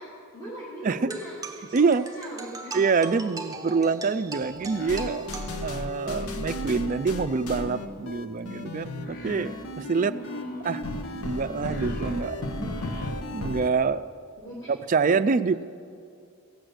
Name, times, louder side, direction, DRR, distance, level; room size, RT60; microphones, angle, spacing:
voice 1, 0.0-2.7 9.9-10.9 14.4-14.7, equal, 15° left, -9 dB, 2.7 m, -40 dB
sound 1, 1.1-6.1, right 3 dB, 15° right, 0.7 m, -40 dB
voice 2, 1.7-2.1 2.7-5.2 5.6-10.2 10.6-10.8 11.1-12.9 13.3-14.0 14.7-15.5, right 4 dB, 35° right, 13 dB, 0.3 m, -26 dB
sound 2, 4.2-5.8 6.1-13.6, equal, 40° left, 1.2 m, -45 dB
sound 3, 4.7-13.7, left 1 dB, 75° left, 1.0 m, -34 dB
16.0 x 6.5 x 7.9 m, 2.4 s
head